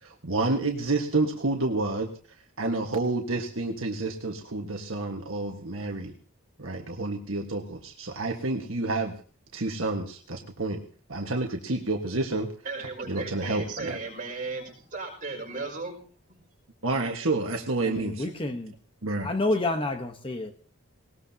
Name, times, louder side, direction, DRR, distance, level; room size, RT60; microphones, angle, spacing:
voice 1, 0.0-6.1 6.6-9.1 9.5-10.8 11.1-12.5 13.1-14.0 16.8-18.3 19.0-19.3, right 2 dB, 65° right, 2 dB, 1.5 m, -29 dB
voice 2, 12.6-16.0 16.3-16.4, right 3 dB, 35° right, 0 dB, 5.9 m, -36 dB
voice 3, 17.8-18.7 19.2-20.5, left 2 dB, 25° left, 6 dB, 1.1 m, -29 dB
19.5 x 19.0 x 2.8 m, 0.42 s
head